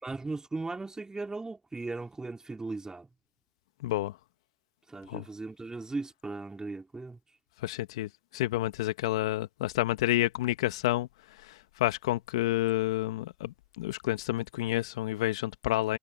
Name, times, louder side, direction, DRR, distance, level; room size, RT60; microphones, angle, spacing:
voice 1, 0.0-3.1 4.9-7.2, right 3 dB, 20° right, 4.3 m, -37 dB
voice 2, 3.8-4.2 5.1-5.3 7.6-11.1 11.4-16.0, left 16 dB, 80° left, 1.7 m, -29 dB
hypercardioid pair, 55°, 3 cm